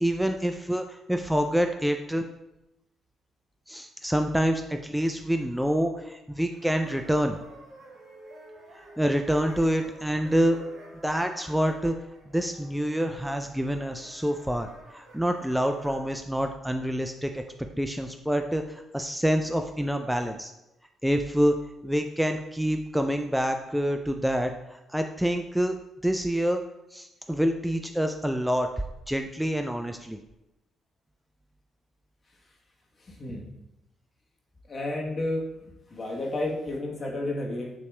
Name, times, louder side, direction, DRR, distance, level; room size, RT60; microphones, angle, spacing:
voice 1, 0.0-2.3 3.7-7.4 9.0-10.6 11.0-12.0 12.3-17.4 17.8-20.5 21.0-25.8 26.0-26.6 26.9-28.7 29.1-30.2, equal, 5° right, 5 dB, 0.3 m, -27 dB
sound 1, 6.5-16.1, right 1 dB, 75° right, 1.2 m, -50 dB
voice 2, 33.0-33.5 34.7-35.5 35.9-37.7, left 1 dB, 45° left, -2 dB, 1.1 m, -31 dB
6.8 x 2.9 x 2.2 m, 0.92 s
hypercardioid pair, 50°, 0 cm